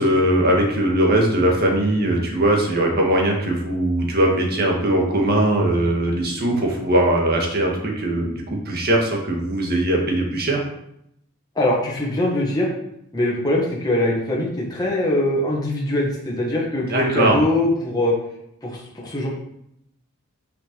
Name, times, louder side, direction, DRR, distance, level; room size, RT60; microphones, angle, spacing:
voice 1, 0.0-10.6 16.9-17.4, right 1 dB, 45° right, 0 dB, 1.7 m, -20 dB
voice 2, 11.5-12.7 13.1-18.1 18.6-19.3, left 1 dB, 20° left, -4 dB, 1.7 m, -22 dB
5.8 x 5.6 x 5.2 m, 0.77 s
head